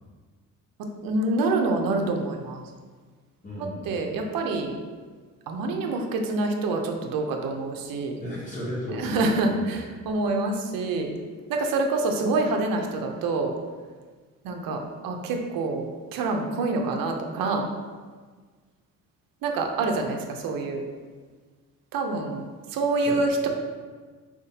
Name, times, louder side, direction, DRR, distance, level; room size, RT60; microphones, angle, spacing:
voice 1, 1.0-2.6 3.9-4.7 5.5-8.2 9.0-11.1 11.5-13.5 14.4-17.7 19.4-20.8 21.9-22.4 22.7-23.5, right 3 dB, 70° right, 3 dB, 0.6 m, -26 dB
voice 2, 3.4-4.0 8.2-9.2 9.5-9.8 23.1-23.2, equal, 20° left, -7 dB, 1.0 m, -34 dB
4.6 x 3.6 x 2.8 m, 1.5 s
cardioid pair, 145°, 35 cm